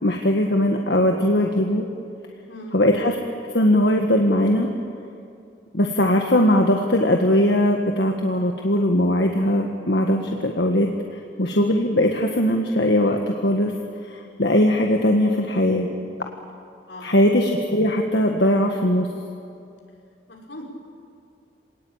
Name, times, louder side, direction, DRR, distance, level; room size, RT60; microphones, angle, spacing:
voice 1, 0.0-1.8 2.7-3.2 3.5-4.7 5.7-13.7 14.0-15.9 17.0-19.1, left 1 dB, 65° left, 2 dB, 1.6 m, -20 dB
voice 2, 2.5-2.8 16.9-17.1 20.3-20.6, left 1 dB, 85° left, -1 dB, 5.5 m, -39 dB
26.5 x 18.5 x 8.9 m, 2.5 s
head